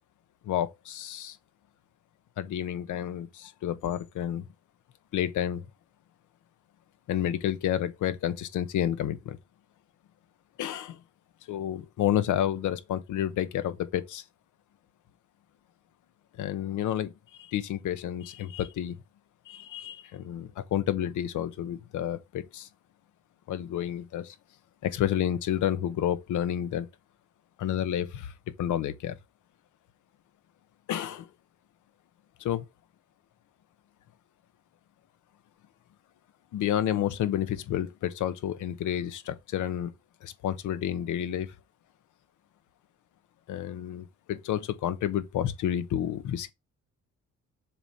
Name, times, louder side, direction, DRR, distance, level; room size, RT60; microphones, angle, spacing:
voice 1, 0.4-1.4 2.4-4.4 5.1-5.6 7.1-9.4 10.6-11.0 11.5-14.2 16.4-17.1 17.4-19.0 19.5-22.7 23.5-24.3 24.8-26.9 27.6-28.3 28.6-29.2 30.9-31.3 32.4-32.6 36.5-39.9 40.2-41.5 43.5-46.5, left 11 dB, 80° left, 1.1 m, -30 dB
6.9 x 3.7 x 4.2 m
cardioid pair, 90°, 30 cm